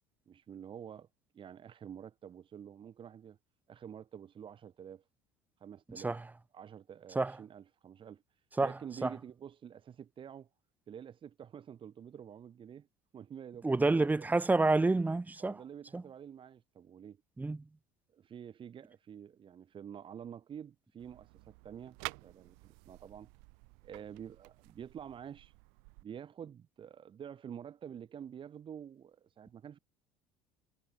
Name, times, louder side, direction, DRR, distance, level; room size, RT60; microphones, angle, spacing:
voice 1, 0.3-1.1 1.3-3.4 3.7-5.0 5.6-6.2 6.5-8.2 8.6-10.5 10.9-12.9 13.1-14.1 15.4-17.2 18.1-22.5 22.9-23.3 23.8-25.5 26.0-29.8, right 8 dB, 40° right, 4.5 m, -48 dB
voice 2, 5.9-6.2 7.1-7.4 8.6-8.7 9.0-9.1 13.6-15.6 15.9-16.0 17.4-17.6, right 3 dB, 15° right, 1.0 m, -28 dB
sound 1, 21.0-26.0, right 40 dB or more, 75° right, 3.9 m, -50 dB
supercardioid pair, 90°, 13 cm